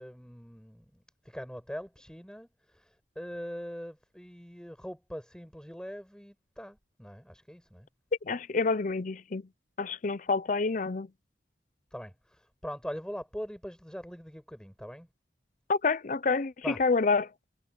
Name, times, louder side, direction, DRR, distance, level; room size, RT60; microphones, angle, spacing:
voice 1, 0.0-7.9 11.9-15.1 16.6-16.8, equal, 5° left, 6.6 m, -42 dB
voice 2, 8.2-9.4 9.8-11.1 15.7-17.3, left 4 dB, 45° left, 0.5 m, -28 dB
head